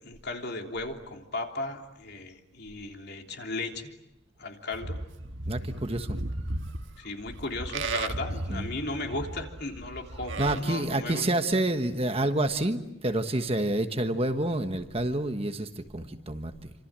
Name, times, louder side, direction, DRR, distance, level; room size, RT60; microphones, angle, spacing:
voice 1, 0.0-3.9 4.4-5.0 7.0-11.3, left 2 dB, 50° left, 3 dB, 3.3 m, -36 dB
Livestock farm animals working animals, 4.7-10.6, right 2 dB, 60° right, 1.5 m, -35 dB
voice 2, 5.5-6.2 8.5-8.7 10.4-16.7, right 1 dB, 30° right, 7 dB, 1.4 m, -28 dB
28.5 x 26.5 x 7.5 m, 0.90 s
head